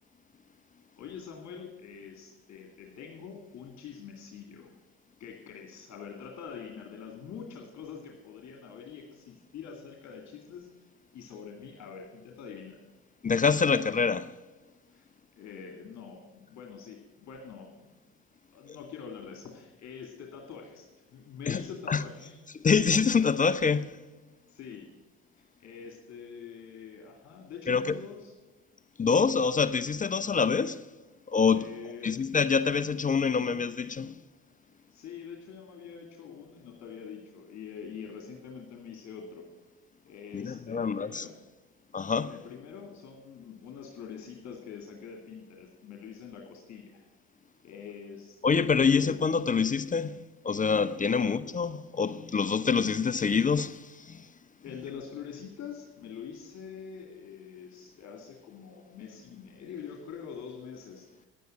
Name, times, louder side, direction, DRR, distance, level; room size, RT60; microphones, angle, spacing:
voice 1, 1.0-4.7 5.2-10.7 11.1-12.8 14.9-15.1 15.3-17.9 18.5-22.4 24.5-24.9 25.4-28.3 31.5-32.2 34.9-39.5 40.0-41.4 42.3-47.0 47.6-48.4 48.7-49.1 51.1-51.2 54.6-61.3, left 7 dB, 50° left, 2.2 m, -45 dB
voice 2, 13.2-14.3 21.5-21.6 21.9-22.0 22.6-24.0 27.7-28.0 29.0-30.8 31.3-31.7 32.0-34.2 40.3-41.3 41.9-42.3 48.4-54.3, left 5 dB, 25° left, 0.6 m, -26 dB
10.5 x 9.3 x 8.9 m
hypercardioid pair, 60°, 34 cm